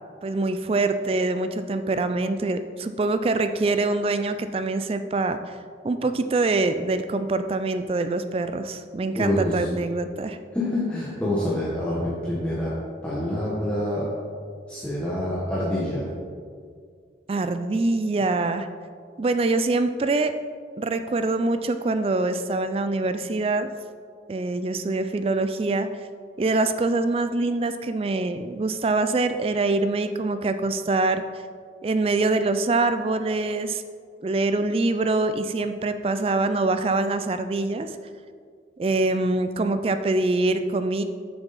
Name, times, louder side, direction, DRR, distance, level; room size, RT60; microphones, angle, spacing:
voice 1, 0.2-5.6 5.8-10.4 17.3-18.7 19.2-20.3 20.8-23.7 24.3-25.9 26.4-31.2 31.8-33.8 34.2-38.0 38.8-41.0, right 2 dB, 30° right, 10 dB, 0.3 m, -24 dB
voice 2, 9.2-9.7 10.5-12.7 13.0-14.1 14.7-16.1, left 1 dB, 5° left, -8 dB, 1.1 m, -26 dB
8.1 x 6.8 x 4.1 m, 2.1 s
head